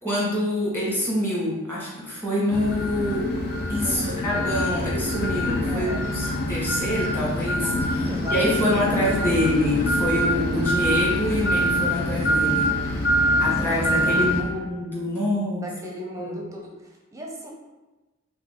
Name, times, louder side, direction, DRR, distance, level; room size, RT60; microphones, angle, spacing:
voice 1, 0.0-3.3 3.7-12.7 13.4-15.7 16.1-16.4, left 1 dB, 10° left, -7 dB, 1.4 m, -26 dB
sound 1, 2.5-14.4, equal, 50° left, 0.6 m, -25 dB
voice 2, 3.8-4.8 5.7-6.0 7.9-8.9 9.2-9.3 12.9-14.6 15.5-17.5, equal, 15° right, -1 dB, 0.6 m, -37 dB
5.8 x 2.3 x 3.6 m, 1.1 s
head